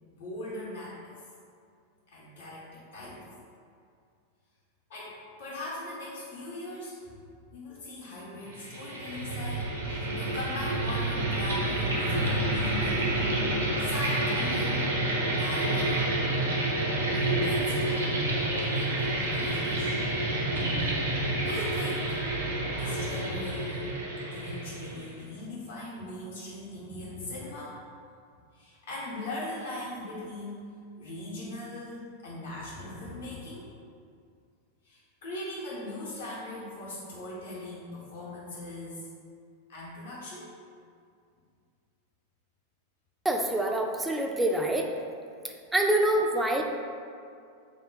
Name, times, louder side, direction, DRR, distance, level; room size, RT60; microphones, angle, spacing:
voice 1, 0.1-1.1 2.1-3.2 4.9-7.1 7.5-13.3 13.8-14.9 15.3-16.0 17.1-18.1 18.7-20.0 21.4-22.2 22.7-23.9 24.3-27.8 28.5-30.6 31.0-33.7 34.8-39.1 39.7-40.5, left 1 dB, 60° left, -6 dB, 0.7 m, -40 dB
sound 1, 8.5-25.2, right 1 dB, 75° right, 0.7 m, -29 dB
voice 2, 43.2-44.9 45.7-46.6, right 1 dB, 10° right, 2 dB, 0.3 m, -25 dB
3.5 x 2.1 x 3.6 m, 2.3 s
figure-of-eight pair, 90°, 0 cm